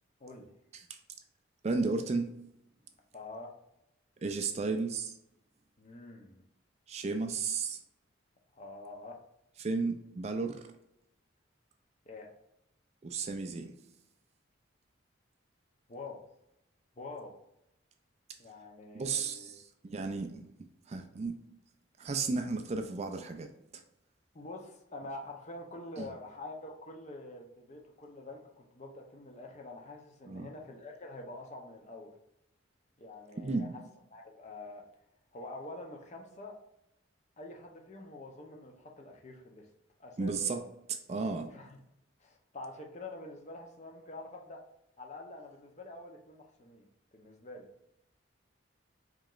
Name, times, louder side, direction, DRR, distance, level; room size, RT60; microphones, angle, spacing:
voice 1, 1.6-2.4 4.2-5.1 6.9-7.8 9.6-10.7 13.0-13.7 18.9-20.5 20.9-21.4 22.0-23.8 26.0-26.1 30.3-30.5 33.4-33.7 40.2-40.6 40.9-41.5, right 4 dB, 35° right, 6 dB, 0.3 m, -33 dB
voice 2, 3.1-3.5 5.8-6.4 8.5-9.2 12.0-12.3 15.9-16.2 17.0-17.3 18.4-19.5 24.3-32.1 33.0-33.8 34.1-34.9 35.3-36.6 37.4-39.7 40.0-40.6 41.5-41.8 42.2-44.6 45.0-46.9 47.1-47.7, left 2 dB, 35° left, 2 dB, 0.7 m, -46 dB
4.8 x 3.0 x 2.4 m, 0.83 s
head